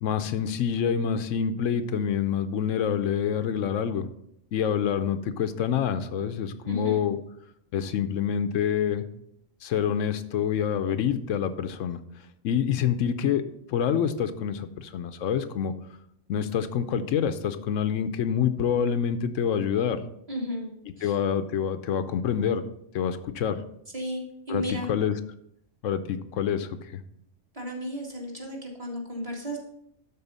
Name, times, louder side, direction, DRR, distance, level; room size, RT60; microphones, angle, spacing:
voice 1, 0.0-4.1 4.5-7.2 7.7-9.1 9.6-12.0 12.4-15.7 16.3-20.0 21.0-22.6 22.9-23.6 24.5-24.6 24.9-25.1 25.8-27.0, left 8 dB, 85° left, 11 dB, 1.0 m, -27 dB
voice 2, 6.6-7.1 20.3-21.2 23.9-24.9 27.5-29.6, equal, 30° right, -2 dB, 2.0 m, -34 dB
12.5 x 4.4 x 4.1 m, 0.75 s
omnidirectional pair, 1.3 m